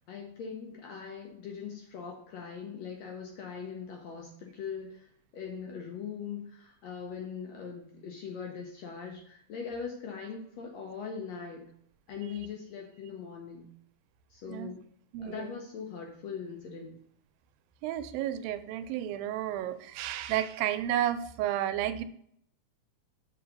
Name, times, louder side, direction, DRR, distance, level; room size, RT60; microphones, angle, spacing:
voice 1, 0.1-11.6 12.1-13.6 14.3-14.8 15.2-17.0, left 6 dB, 70° left, 1 dB, 1.7 m, -41 dB
voice 2, 15.1-15.5 17.8-22.0, right 12 dB, 90° right, 11 dB, 2.3 m, -32 dB
6.0 x 4.7 x 5.2 m, 0.66 s
omnidirectional pair, 4.0 m